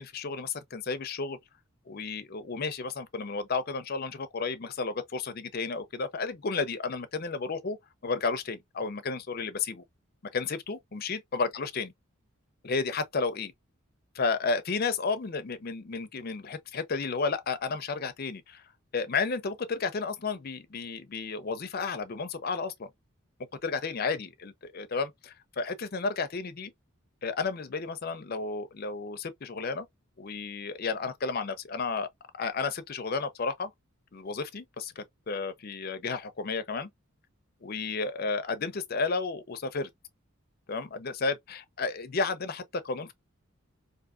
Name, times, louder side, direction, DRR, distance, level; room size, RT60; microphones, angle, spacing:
voice 1, 0.0-1.4 1.9-7.8 8.0-9.8 10.3-11.9 12.6-13.5 14.2-18.6 18.9-22.9 23.6-26.7 27.2-29.9 30.2-32.1 32.4-33.7 34.1-36.9 37.6-39.9 40.7-43.1, left 4 dB, 45° left, 0.5 m, -32 dB
3.7 x 2.6 x 2.3 m
head